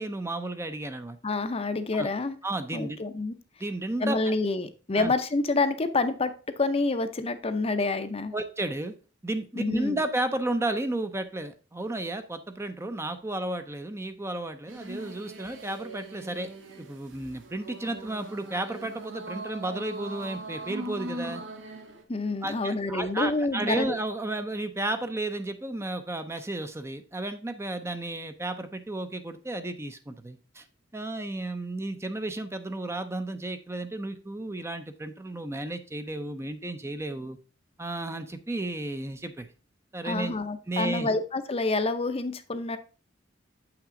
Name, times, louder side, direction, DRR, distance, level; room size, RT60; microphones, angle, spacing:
voice 1, 0.0-1.2 1.9-2.1 2.4-3.0 3.6-4.2 4.9-5.1 8.3-9.0 9.2-16.5 16.8-21.4 22.4-30.6 30.9-37.4 37.8-39.5 39.9-40.4 40.7-41.1, right 2 dB, 15° right, 8 dB, 0.6 m, -33 dB
voice 2, 1.2-2.4 2.7-3.3 4.0-8.3 9.6-10.0 22.1-23.9 40.0-42.8, left 3 dB, 30° left, 9 dB, 0.6 m, -28 dB
sound 1, 14.7-22.0, right 2 dB, 80° right, 1.4 m, -40 dB
7.8 x 5.9 x 3.7 m, 0.36 s
head